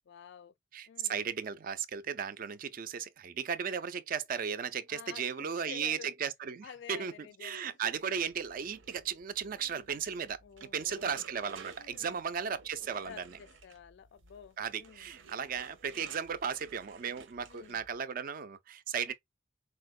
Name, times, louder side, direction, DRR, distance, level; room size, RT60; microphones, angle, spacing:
voice 1, 0.1-0.5 0.9-1.2 4.9-6.1 6.6-8.0 9.6-9.9 10.4-11.1 11.8-12.2 13.0-15.1 17.5-17.8 19.1-19.2, left 8 dB, 60° left, 0.3 m, -51 dB
voice 2, 0.7-7.1 7.4-13.4 14.6-19.1, right 7 dB, 45° right, 0.4 m, -36 dB
sound 1, 8.3-18.0, right 5 dB, 75° right, 0.7 m, -54 dB
4.2 x 2.1 x 2.3 m
head